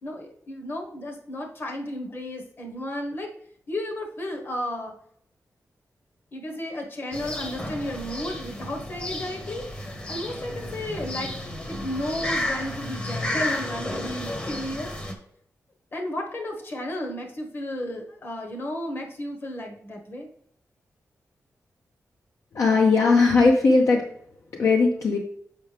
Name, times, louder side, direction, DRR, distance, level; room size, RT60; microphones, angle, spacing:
voice 1, 0.0-3.3 3.7-4.9 6.3-9.6 10.1-11.3 11.7-14.9 15.9-20.3, left 1 dB, 40° left, 2 dB, 1.3 m, -33 dB
sound 1, 7.1-15.1, left 1 dB, 20° left, 1.0 m, -32 dB
voice 2, 22.5-24.0 24.6-25.2, left 3 dB, 60° left, 0 dB, 0.8 m, -18 dB
7.2 x 5.5 x 3.4 m, 0.66 s
wide cardioid pair, 155°, 6 cm